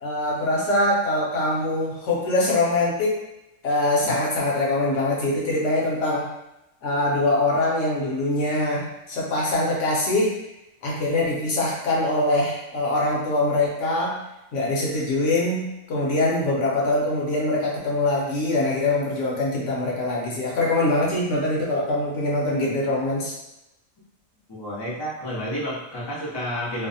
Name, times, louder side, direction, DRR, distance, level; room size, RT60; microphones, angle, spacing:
voice 1, 0.0-3.2 3.6-6.3 6.8-10.4 10.8-14.2 14.5-23.3, left 2 dB, 70° left, -4 dB, 1.0 m, -23 dB
voice 2, 24.5-26.9, equal, 35° left, -7 dB, 0.4 m, -30 dB
2.6 x 2.0 x 2.6 m, 0.92 s
omnidirectional pair, 1.4 m